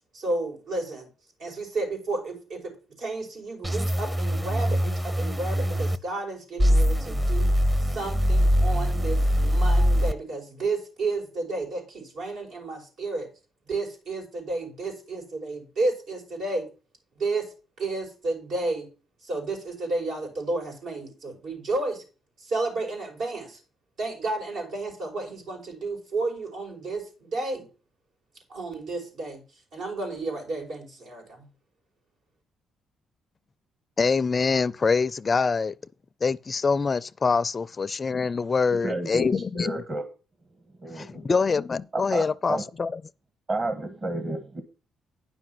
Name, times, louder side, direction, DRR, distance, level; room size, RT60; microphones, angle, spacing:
voice 1, 0.1-1.1 1.4-2.7 3.0-7.5 7.8-13.3 13.7-16.7 17.2-17.4 17.8-18.9 19.2-22.0 22.4-23.6 24.0-27.6 28.5-29.4 29.7-31.5, right 2 dB, 75° right, 5.6 m, -31 dB
sound 1, 3.6-6.0 6.6-10.1, equal, 15° right, 0.7 m, -23 dB
voice 2, 34.0-35.7 36.2-39.8 40.9-43.0, left 5 dB, 35° left, 0.4 m, -25 dB
voice 3, 38.8-40.0 40.8-41.3 41.9-42.6 43.5-44.6, right 2 dB, 40° right, 1.7 m, -31 dB
9.9 x 6.0 x 6.0 m
cardioid pair, 90°, 0 cm